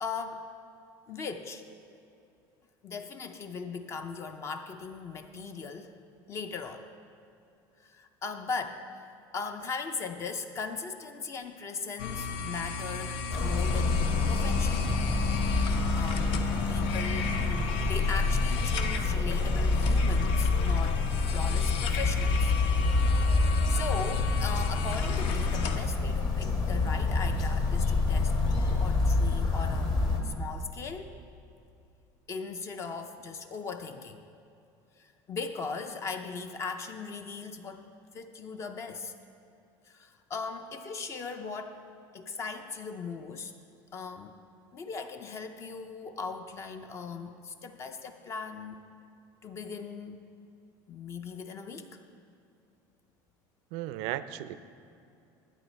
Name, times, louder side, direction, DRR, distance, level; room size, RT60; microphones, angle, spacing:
voice 1, 0.0-0.4 1.1-1.6 2.8-5.9 6.3-6.9 7.8-9.1 9.3-14.9 15.9-17.5 17.8-21.0 21.3-22.5 23.7-31.1 32.3-34.2 35.0-39.1 39.9-41.8 42.1-43.5 43.9-44.3 44.7-48.8 49.4-50.2 50.9-52.0, left 5 dB, 30° left, 7 dB, 0.4 m, -38 dB
sound 1, 12.0-25.8, left 4 dB, 60° left, 0.8 m, -36 dB
sound 2, 13.3-30.2, left 3 dB, 45° left, 1.4 m, -27 dB
voice 2, 53.7-54.6, right 14 dB, 70° right, 13 dB, 0.4 m, -35 dB
12.0 x 9.2 x 4.1 m, 2.6 s
cardioid pair, 160°, 10 cm